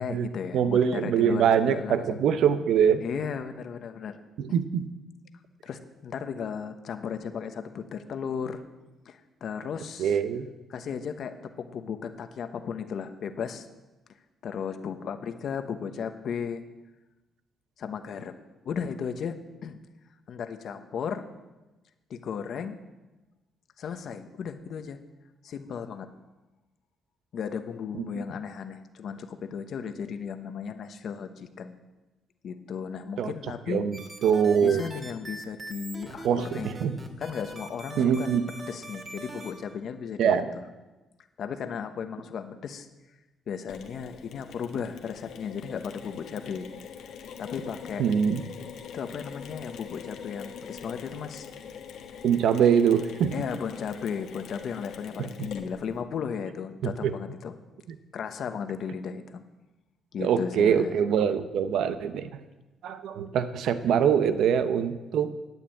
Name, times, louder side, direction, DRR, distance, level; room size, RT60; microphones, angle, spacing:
voice 1, 0.0-2.2 3.0-4.2 4.5-4.6 5.6-8.6 9.0-10.2 10.7-13.7 14.4-16.6 17.8-19.8 20.3-21.3 22.1-22.8 23.8-25.0 25.4-26.1 27.3-31.7 32.4-33.9 34.6-36.7 37.2-38.4 38.7-40.6 41.4-42.9 43.5-46.7 47.4-48.0 48.9-51.5 53.3-57.5 58.1-59.4 60.1-60.9, left 7 dB, 65° left, 8 dB, 1.1 m, -35 dB
voice 2, 0.5-3.0 4.4-4.9 10.0-10.5 28.0-28.1 33.2-33.3 33.7-34.8 36.2-36.9 38.0-38.4 40.2-40.5 48.0-48.4 52.2-53.3 55.2-55.3 57.0-57.1 60.2-62.4 62.8-65.3, right 8 dB, 75° right, 11 dB, 0.8 m, -24 dB
sound 1, 33.9-39.5, right 1 dB, 30° right, 2.2 m, -42 dB
Mechanisms, 43.7-56.0, left 7 dB, 80° left, 1.4 m, -43 dB
11.0 x 8.5 x 8.6 m, 1.1 s
cardioid pair, 90°, 0 cm